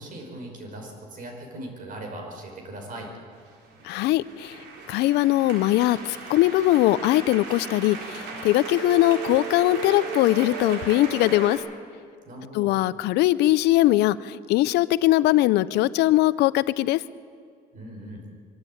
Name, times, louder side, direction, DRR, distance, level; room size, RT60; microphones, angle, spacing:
voice 1, 0.0-3.1 12.3-12.7 17.7-18.2, right 1 dB, 55° right, 2 dB, 5.5 m, -39 dB
sound 1, 3.5-11.6, right 5 dB, 80° right, 4.3 m, -36 dB
voice 2, 3.8-4.6 4.9-11.6 12.5-17.0, left 16 dB, 85° left, 17 dB, 0.6 m, -21 dB
24.0 x 12.5 x 8.7 m, 2.2 s
cardioid pair, 110°, 17 cm